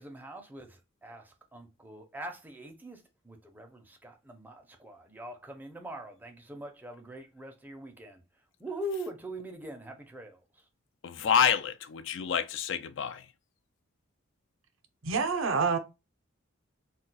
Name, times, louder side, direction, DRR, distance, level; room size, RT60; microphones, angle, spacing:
voice 1, 0.0-8.2 8.6-10.4, right 1 dB, 10° right, 0.5 m, -42 dB
voice 2, 11.0-13.2, left 7 dB, 65° left, 0.3 m, -28 dB
voice 3, 15.0-15.8, right 5 dB, 75° right, 0.5 m, -27 dB
2.3 x 2.2 x 3.9 m
head